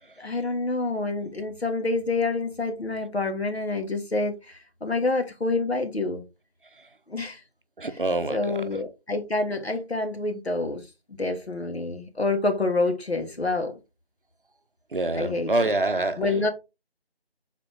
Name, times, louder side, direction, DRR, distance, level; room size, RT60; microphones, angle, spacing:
voice 1, 0.2-6.2 7.1-7.4 8.3-10.8 11.2-13.8 15.1-15.7 16.2-16.5, left 3 dB, 75° left, 1.4 m, -27 dB
voice 2, 7.8-8.7 14.9-16.2, right 2 dB, 55° right, 0.6 m, -26 dB
4.0 x 3.8 x 3.4 m
figure-of-eight pair, 170°, 32 cm